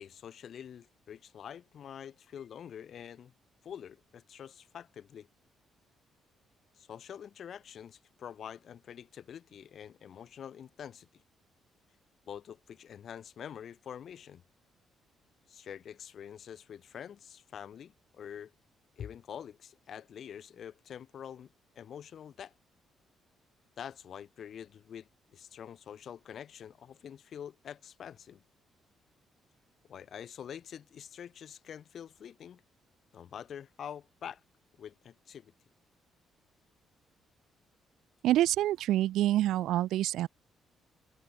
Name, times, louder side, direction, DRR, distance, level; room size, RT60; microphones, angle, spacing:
voice 1, 0.0-3.3 3.6-5.3 6.7-11.2 12.3-14.4 15.5-18.5 19.0-22.5 23.8-28.4 29.9-32.6 33.1-34.4 34.8-35.5, left 8 dB, 60° left, 6.0 m, -46 dB
voice 2, 38.2-40.3, right 13 dB, 85° right, 1.2 m, -27 dB
cardioid pair, 90°, 0 cm